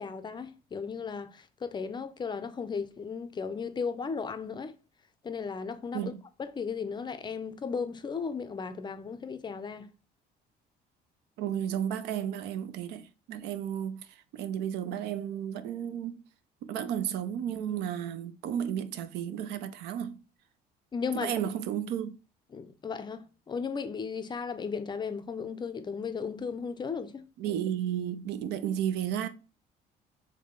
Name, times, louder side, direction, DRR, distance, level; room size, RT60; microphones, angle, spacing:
voice 1, 0.0-4.7 5.2-6.1 6.4-9.9 20.9-21.3 22.5-27.3, left 5 dB, 25° left, 0.4 m, -35 dB
voice 2, 11.4-14.1 14.3-16.2 16.6-20.2 21.1-22.1 27.4-29.3, right 9 dB, 85° right, 0.5 m, -33 dB
3.7 x 3.2 x 3.6 m
cardioid pair, 110°, 17 cm